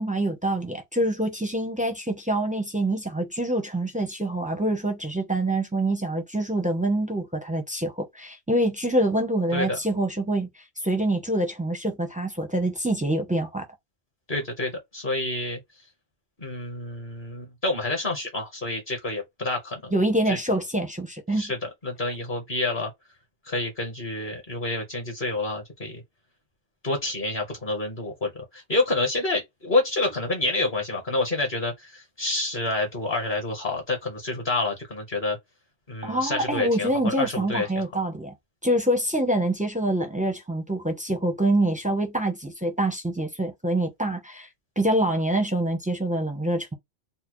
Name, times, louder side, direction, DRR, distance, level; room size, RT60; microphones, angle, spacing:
voice 1, 0.0-13.6 19.9-21.5 36.0-38.3 38.6-44.5 44.8-46.7, right 1 dB, 10° right, 0.5 m, -26 dB
voice 2, 14.3-15.6 16.4-19.9 20.3-20.4 21.4-22.9 23.4-26.0 26.8-35.4 35.9-37.7, left 2 dB, 45° left, 1.3 m, -28 dB
4.0 x 2.1 x 3.0 m
omnidirectional pair, 1.2 m